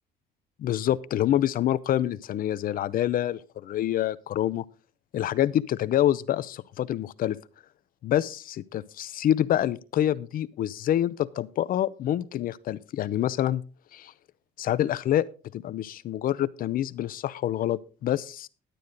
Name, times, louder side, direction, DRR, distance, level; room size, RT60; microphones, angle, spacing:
voice 1, 0.6-4.7 5.1-7.4 8.0-13.6 13.9-14.1 14.6-15.3 15.5-18.5, left 12 dB, 55° left, 0.7 m, -26 dB
11.5 x 9.2 x 3.9 m
cardioid pair, 110°, 17 cm